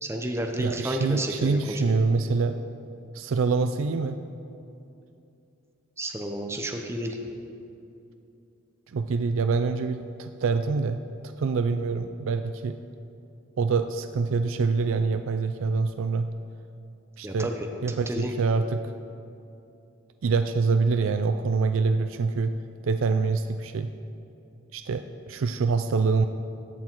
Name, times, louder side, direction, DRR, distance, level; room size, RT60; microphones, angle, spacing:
voice 1, 0.0-1.9 6.0-7.2 17.2-18.3, right 1 dB, 15° right, 3 dB, 0.8 m, -31 dB
voice 2, 0.6-2.6 3.1-4.2 8.9-11.0 11.4-12.8 13.6-16.3 17.2-17.5 17.8-18.8 20.2-22.5 22.8-23.9 24.7-26.3, right 4 dB, 80° right, 9 dB, 0.4 m, -25 dB
14.5 x 8.4 x 4.5 m, 2.7 s
head